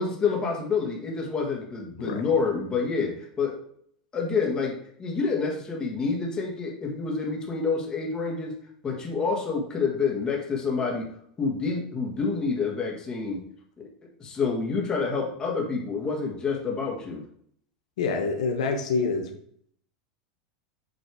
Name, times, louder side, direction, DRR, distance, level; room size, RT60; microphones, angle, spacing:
voice 1, 0.0-3.5 4.1-8.5 8.8-11.1 11.4-13.4 13.8-13.9 14.2-17.2, left 4 dB, 20° left, 0 dB, 1.7 m, -28 dB
voice 2, 18.0-19.3, left 4 dB, 85° left, 4 dB, 1.0 m, -26 dB
7.9 x 3.2 x 4.7 m, 0.64 s
supercardioid pair, 130°, 4 cm